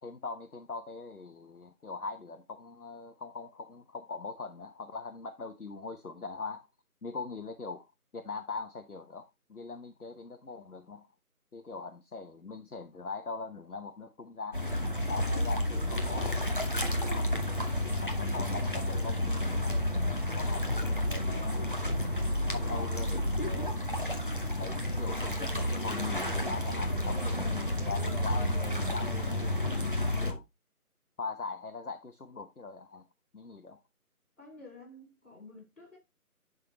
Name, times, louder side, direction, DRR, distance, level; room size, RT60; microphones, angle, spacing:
voice 1, 0.0-6.7 7.0-7.9 8.1-9.2 9.5-11.1 11.5-14.6 15.1-17.3 18.0-19.8 20.4-21.8 22.5-23.9 24.6-29.6 30.2-30.4 31.2-33.0 33.3-33.8, left 4 dB, 75° left, 1.1 m, -41 dB
sound 1, 14.5-30.3, left 1 dB, 35° left, 0.9 m, -31 dB
voice 2, 34.4-36.0, left 2 dB, 55° left, 4.2 m, -51 dB
11.0 x 3.8 x 3.0 m
figure-of-eight pair, 165°, 45 cm